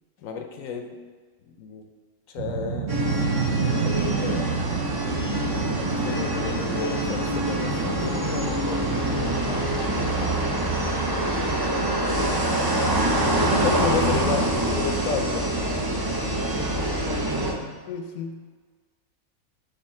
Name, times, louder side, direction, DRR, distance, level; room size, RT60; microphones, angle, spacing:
voice 1, 0.2-0.9 1.5-1.8 2.3-3.0 3.6-4.5 6.0-8.0 11.9-12.4 13.0-13.1 13.6-15.5 17.9-18.4, left 6 dB, 75° left, 5 dB, 0.9 m, -31 dB
sound 1, 2.4-8.4, right 7 dB, 65° right, 0.8 m, -30 dB
sound 2, 2.9-17.5, right 1 dB, 30° right, 0.4 m, -25 dB
voice 2, 5.3-5.7 8.0-9.8 16.2-17.7, left 3 dB, 30° left, 1 dB, 0.6 m, -38 dB
6.8 x 2.8 x 5.8 m, 1.5 s
omnidirectional pair, 1.5 m